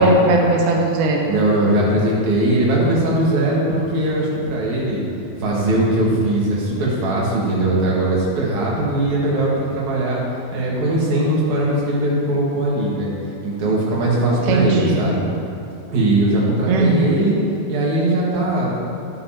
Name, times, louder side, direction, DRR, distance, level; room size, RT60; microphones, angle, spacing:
voice 1, 0.0-1.3 14.5-15.1 16.7-17.2, right 2 dB, 85° right, 0 dB, 1.7 m, -17 dB
voice 2, 1.3-5.0 5.4-10.2 10.5-13.1 13.4-15.2 15.9-17.4 17.7-18.7, right 1 dB, 55° right, -5 dB, 2.7 m, -20 dB
11.0 x 9.5 x 2.9 m, 2.6 s
omnidirectional pair, 4.5 m